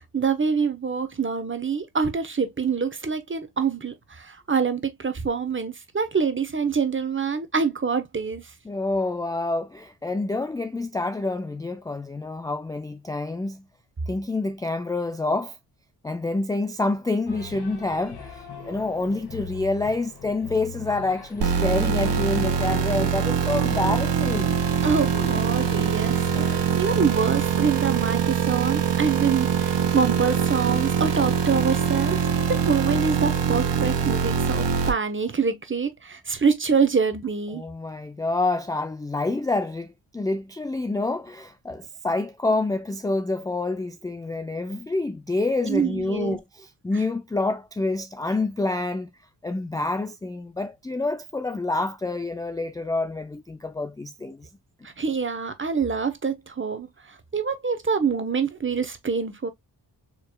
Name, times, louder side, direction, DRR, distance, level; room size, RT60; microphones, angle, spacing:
voice 1, 0.1-8.4 24.8-26.2 26.5-32.2 32.5-37.6 45.6-46.4 55.0-56.9 57.3-59.5, right 5 dB, 30° right, 1.1 m, -25 dB
voice 2, 8.6-13.6 14.1-15.6 16.0-24.6 25.3-25.4 26.3-26.6 37.5-49.1 49.4-54.5, left 2 dB, 10° left, 0.4 m, -27 dB
sound 1, 17.3-28.3, left 4 dB, 65° left, 2.0 m, -41 dB
sound 2, 21.4-34.9, right 7 dB, 80° right, 1.2 m, -23 dB
4.7 x 3.2 x 2.2 m
cardioid pair, 65°, 41 cm